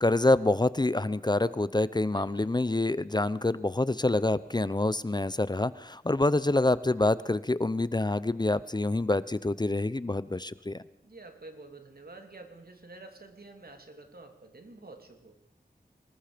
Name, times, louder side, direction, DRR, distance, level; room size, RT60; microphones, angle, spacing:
voice 1, 0.0-10.8, left 2 dB, 25° left, 16 dB, 0.7 m, -26 dB
voice 2, 2.1-2.5 11.0-15.4, right 2 dB, 70° right, 5 dB, 3.0 m, -49 dB
25.0 x 20.5 x 5.1 m, 0.80 s
wide cardioid pair, 70°, 16 cm